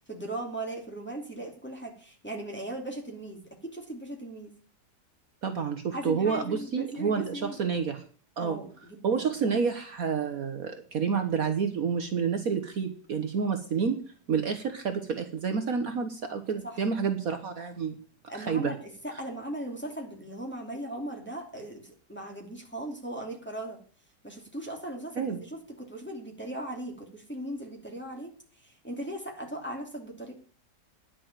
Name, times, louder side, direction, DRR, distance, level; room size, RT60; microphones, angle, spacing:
voice 1, 0.0-4.6 5.9-7.6 8.4-9.2 16.6-16.8 18.3-18.8 19.0-23.8 24.2-28.3 28.6-30.3, right 1 dB, 5° left, 0 dB, 2.7 m, -38 dB
voice 2, 5.4-8.0 8.4-8.6 9.0-14.0 14.3-17.9 18.4-18.7 25.2-25.4, right 6 dB, 60° right, 7 dB, 1.5 m, -29 dB
10.5 x 6.9 x 8.9 m, 0.42 s
omnidirectional pair, 1.8 m